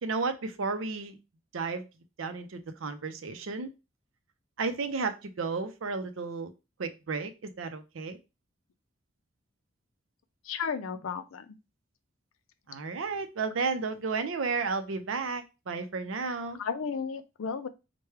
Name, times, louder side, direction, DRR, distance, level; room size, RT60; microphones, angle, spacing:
voice 1, 0.0-1.2 1.5-1.9 2.2-3.7 4.6-6.5 6.8-8.2 12.7-16.6, right 4 dB, 70° right, 9 dB, 0.5 m, -33 dB
voice 2, 10.4-11.6 16.6-17.7, left 6 dB, 80° left, 11 dB, 0.4 m, -34 dB
4.5 x 2.2 x 3.2 m, 0.27 s
head